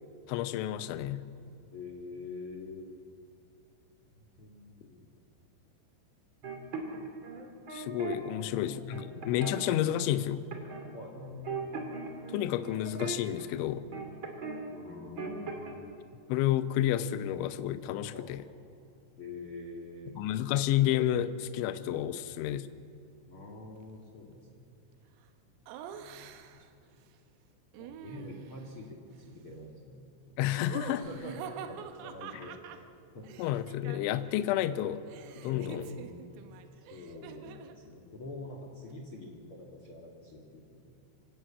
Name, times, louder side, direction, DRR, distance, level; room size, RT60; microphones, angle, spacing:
voice 1, 0.3-1.3 7.7-10.4 12.3-13.9 16.3-18.5 20.2-22.7 30.4-31.1 32.3-32.5 33.4-35.0 35.4-35.9, left 12 dB, 80° left, 12 dB, 3.0 m, -30 dB
voice 2, 1.7-2.9 4.4-5.1 8.3-9.3 10.9-11.6 14.7-15.8 18.1-18.3 19.2-20.2 22.2-22.3 23.3-24.8 25.9-26.5 27.7-30.1 31.0-31.3 31.7-32.9 33.1-33.3 35.4-36.5 36.9-40.9, left 2 dB, 55° left, 1 dB, 1.5 m, -46 dB
sound 1, 6.4-8.2 8.6-9.8 10.5-10.9 11.1-14.6 14.9-15.7, right 4 dB, 35° right, 2.3 m, -39 dB
Laughter, 25.7-26.7 27.7-28.8 30.6-34.4 34.7-37.8, right 8 dB, 80° right, 3.7 m, -46 dB
25.5 x 17.5 x 8.4 m, 2.5 s
omnidirectional pair, 5.9 m